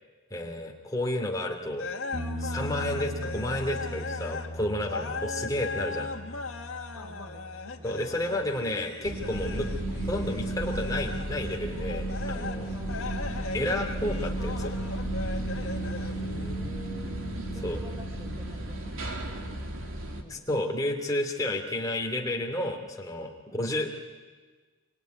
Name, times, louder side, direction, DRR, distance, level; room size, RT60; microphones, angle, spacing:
voice 1, 0.3-1.9 2.4-6.1 7.8-12.7 13.5-14.7 17.6-17.8 20.3-23.9, left 1 dB, 15° left, 1 dB, 3.0 m, -31 dB
sound 1, 1.7-4.5 4.8-16.5, left 3 dB, 70° left, 2.0 m, -39 dB
sound 2, 2.1-9.7 12.8-12.9, equal, 40° right, 2.5 m, -40 dB
voice 2, 6.9-8.1 12.7-13.4 16.4-18.8 19.1-19.6 20.2-20.5 23.5-23.7, right 1 dB, 10° right, 0 dB, 4.8 m, -49 dB
sound 3, 9.0-20.2, right 1 dB, 65° right, 3.0 m, -33 dB
25.5 x 24.5 x 9.5 m, 1.4 s
head